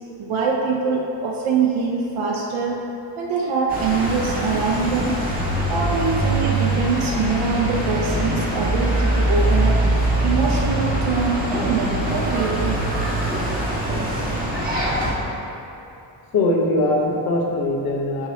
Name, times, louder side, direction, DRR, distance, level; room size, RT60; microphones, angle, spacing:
voice 1, 0.2-2.9 3.2-5.3 5.7-9.8 10.2-12.8, right 4 dB, 90° right, -2 dB, 0.7 m, -23 dB
sound 1, 3.7-15.1, right 1 dB, 20° right, 1.4 m, -22 dB
voice 2, 16.3-18.3, left 2 dB, 50° left, -2 dB, 1.0 m, -21 dB
8.7 x 3.0 x 4.1 m, 2.7 s
cardioid pair, 140°, 46 cm